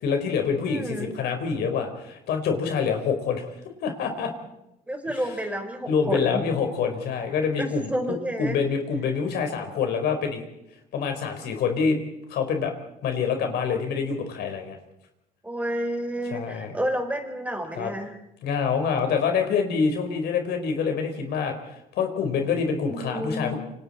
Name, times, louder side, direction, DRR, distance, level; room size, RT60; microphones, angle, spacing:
voice 1, 0.0-3.5 3.8-4.3 5.8-7.9 8.4-10.4 10.9-12.0 12.3-12.7 13.0-14.8 16.3-16.8 17.8-17.9 18.4-21.6 21.9-23.6, left 6 dB, 75° left, 5 dB, 4.3 m, -26 dB
voice 2, 0.7-1.1 4.9-6.4 7.6-8.6 15.4-18.2 22.9-23.6, equal, 10° right, 3 dB, 4.9 m, -30 dB
28.0 x 25.5 x 4.3 m, 0.85 s
cardioid pair, 110°, 17 cm